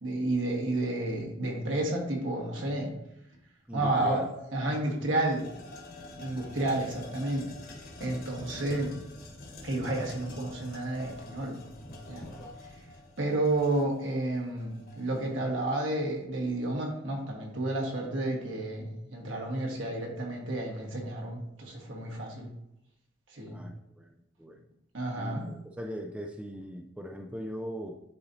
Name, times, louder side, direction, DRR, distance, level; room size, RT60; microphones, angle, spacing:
voice 1, 0.0-2.9 3.7-4.2 4.5-5.5 6.2-7.5 8.0-8.9 9.6-11.6 12.1-12.3 13.2-22.5 23.3-23.6 24.9-25.5, right 2 dB, 70° right, 0 dB, 1.5 m, -31 dB
voice 2, 3.7-4.3 23.5-24.6 25.2-28.0, equal, 5° right, 3 dB, 0.4 m, -40 dB
sound 1, 4.2-4.3 4.7-15.4, left 1 dB, 50° left, 1.3 m, -46 dB
9.9 x 4.1 x 2.7 m, 0.83 s
head